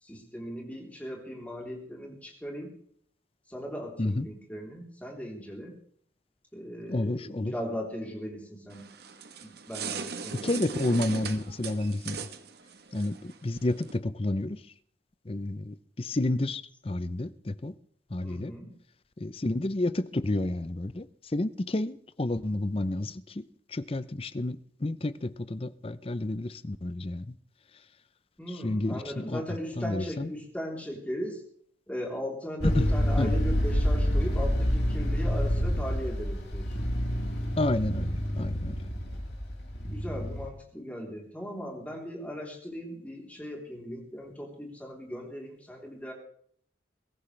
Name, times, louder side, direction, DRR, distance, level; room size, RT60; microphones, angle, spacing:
voice 1, 0.0-2.7 3.5-5.8 6.5-8.9 9.4-10.6 18.2-18.7 28.4-31.4 31.9-36.8 39.8-46.1, equal, 10° left, -1 dB, 3.5 m, -38 dB
voice 2, 6.9-7.5 10.4-12.2 12.9-14.6 15.2-17.7 18.1-18.5 19.2-27.3 28.6-29.4 29.8-30.3 32.7-32.9 33.2-33.3 37.6-38.8, left 2 dB, 30° left, 15 dB, 0.6 m, -30 dB
sound 1, 8.7-14.0, right 5 dB, 55° right, 1.2 m, -39 dB
sound 2, 32.6-40.5, equal, 60° left, 3.8 m, -28 dB
22.5 x 14.0 x 3.3 m, 0.62 s
head